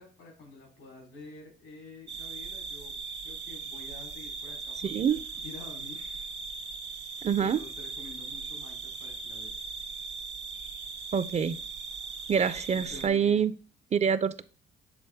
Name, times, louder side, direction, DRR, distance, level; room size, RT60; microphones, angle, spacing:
voice 1, 0.0-2.9 3.2-6.3 7.4-9.6 12.3-12.6 12.9-13.5, left 3 dB, 90° left, 0 dB, 3.4 m, -48 dB
sound 1, 2.1-13.1, right 4 dB, 65° right, 0.7 m, -39 dB
voice 2, 4.8-5.2 7.2-7.6 11.1-11.6 12.3-13.5 13.9-14.4, right 7 dB, 35° right, 15 dB, 0.4 m, -26 dB
6.9 x 4.1 x 3.4 m, 0.38 s
cardioid pair, 90°, 20 cm